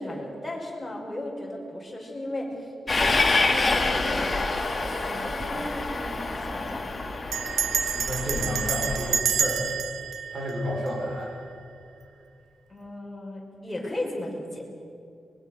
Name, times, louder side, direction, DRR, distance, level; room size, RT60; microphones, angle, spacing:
voice 1, 0.0-4.5 4.9-6.8 12.7-14.6, left 1 dB, 5° left, -3 dB, 5.6 m, -35 dB
Train, 2.9-9.2, left 3 dB, 25° left, 2.2 m, -27 dB
Bell, 5.2-5.6 5.8-5.9 6.1-6.5 7.3-11.4, right 7 dB, 80° right, 1.1 m, -29 dB
voice 2, 8.0-9.6 10.3-11.4, equal, 30° right, -1 dB, 5.4 m, -31 dB
24.5 x 22.5 x 6.7 m, 2.6 s
wide cardioid pair, 155°, 0 cm